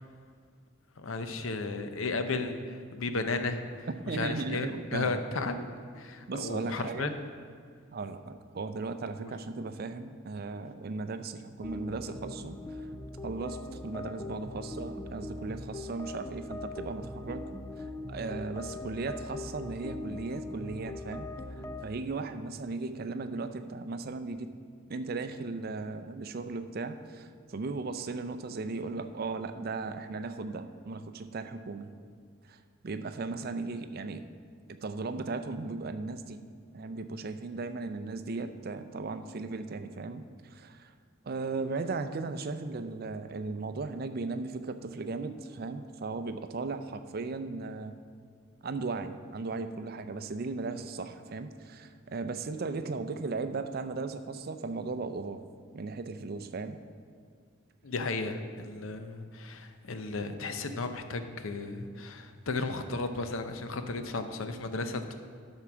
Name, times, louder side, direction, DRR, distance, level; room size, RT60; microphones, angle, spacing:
voice 1, 1.0-7.1 9.2-9.3 57.8-65.2, left 3 dB, 90° left, 8 dB, 0.7 m, -34 dB
voice 2, 4.1-5.2 6.3-7.1 7.9-12.6 13.2-17.5 18.1-21.3 21.8-24.5 24.9-31.9 32.5-32.6 32.8-34.2 34.8-36.4 36.7-40.9 41.3-48.0 48.6-55.4 55.7-56.8, right 3 dB, 50° right, 10 dB, 0.5 m, -36 dB
sound 1, 11.6-21.9, left 2 dB, 15° left, 0.3 m, -41 dB
12.0 x 4.5 x 6.1 m, 2.1 s
head